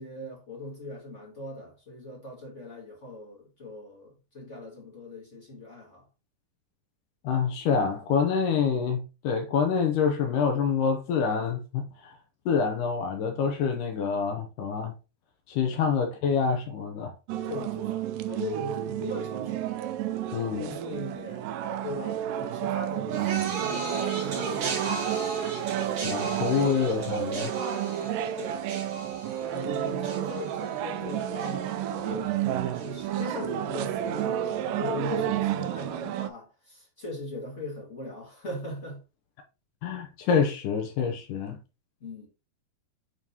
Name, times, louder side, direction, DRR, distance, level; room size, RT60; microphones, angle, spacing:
voice 1, 0.0-6.0 17.4-19.8 20.6-21.5 21.8-25.2 28.0-28.6 29.5-32.3 32.8-39.0 42.0-42.3, left 1 dB, 35° left, 1.3 m, -39 dB
voice 2, 7.2-11.8 12.5-14.9 15.5-17.1 20.3-20.7 26.0-27.5 39.8-41.6, left 6 dB, 75° left, 2.1 m, -26 dB
Taberna (tavern) - Galicia, 17.3-36.3, right 11 dB, 80° right, 1.9 m, -31 dB
sound 1, 23.1-32.5 32.7-33.3 34.1-34.2, right 4 dB, 55° right, 3.7 m, -36 dB
9.1 x 3.7 x 2.8 m
omnidirectional pair, 4.3 m